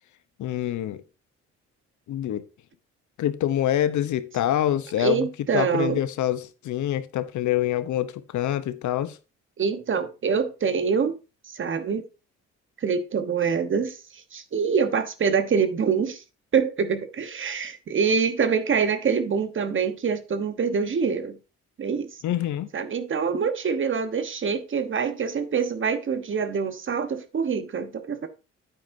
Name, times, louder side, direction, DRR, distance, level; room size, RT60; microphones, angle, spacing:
voice 1, 0.4-1.0 2.1-2.4 3.2-5.3 5.5-9.2 22.2-22.7, left 12 dB, 70° left, 0.9 m, -26 dB
voice 2, 5.0-6.0 9.6-11.1 11.5-12.0 12.8-16.2 16.5-21.4 21.8-22.2 22.7-28.3, right 6 dB, 40° right, 1.1 m, -25 dB
9.0 x 8.8 x 2.7 m
cardioid pair, 90°, 30 cm